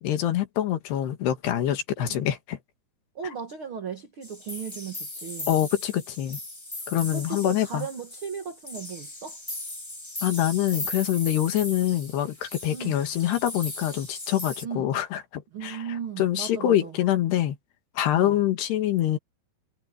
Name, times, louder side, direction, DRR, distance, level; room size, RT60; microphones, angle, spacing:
voice 1, 0.0-2.6 3.2-3.3 5.5-6.4 6.9-7.9 10.2-15.9 16.2-17.6 18.0-19.2, left 12 dB, 70° left, 3.8 m, -25 dB
voice 2, 3.1-5.5 7.1-9.4 12.7-13.0 14.6-15.0 15.5-17.0 18.1-18.4, right 7 dB, 70° right, 1.2 m, -36 dB
sound 1, 4.2-14.6, left 1 dB, 20° left, 0.6 m, -38 dB
omnidirectional pair, 5.0 m